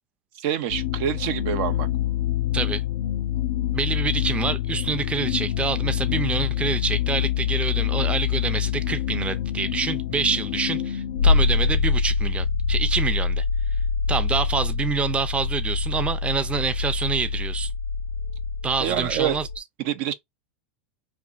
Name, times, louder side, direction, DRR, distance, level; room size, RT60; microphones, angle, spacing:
voice 1, 0.4-1.9 18.8-19.4 19.8-20.1, right 10 dB, 60° right, 0.6 m, -26 dB
sound 1, 0.7-19.6, left 7 dB, 80° left, 0.5 m, -25 dB
voice 2, 3.7-13.4 14.1-17.7 18.6-19.5, right 5 dB, 15° right, 0.6 m, -27 dB
4.4 x 3.0 x 2.5 m
hypercardioid pair, 110°, 7 cm